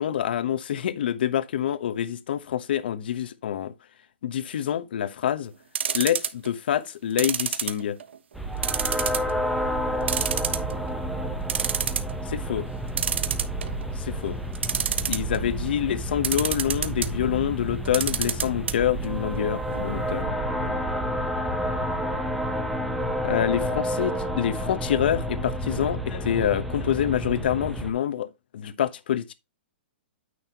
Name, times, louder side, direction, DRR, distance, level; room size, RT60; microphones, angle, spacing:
voice 1, 0.0-3.7 4.2-5.5 5.9-8.0 12.3-12.6 14.0-14.4 15.1-20.8 23.2-29.3, left 10 dB, 60° left, 1.0 m, -27 dB
sound 1, 5.7-6.5 7.2-8.2 8.6-9.3 9.7-9.8 10.1-10.9 11.2-11.3 11.5-12.1 13.0-13.8 14.5-15.4 16.2-17.1 17.9-18.7 19.0-19.1 19.4-19.5, right 8 dB, 90° right, 1.1 m, -27 dB
sound 2, 8.3-27.9, equal, ahead, 0.9 m, -30 dB
9.5 x 6.4 x 2.9 m
hypercardioid pair, 170°, 6 cm